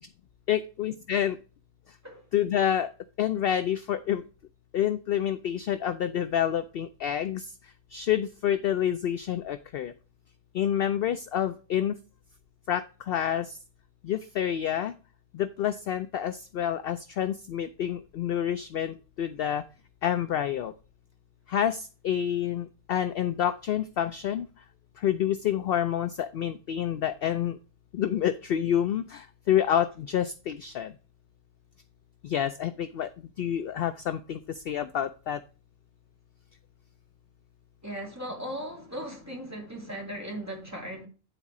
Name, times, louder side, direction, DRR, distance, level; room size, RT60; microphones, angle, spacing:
voice 1, 0.5-1.4 2.3-2.9 3.2-4.2 4.7-7.5 7.9-9.9 10.5-11.9 12.7-13.5 14.0-14.9 15.3-19.6 20.0-20.7 21.5-24.5 25.0-27.6 27.9-30.9 32.2-33.1 33.4-34.4 34.7-35.4, left 10 dB, 65° left, 0.6 m, -28 dB
voice 2, 37.8-41.1, right 1 dB, 10° right, 2.7 m, -37 dB
10.0 x 4.1 x 4.8 m
omnidirectional pair, 1.4 m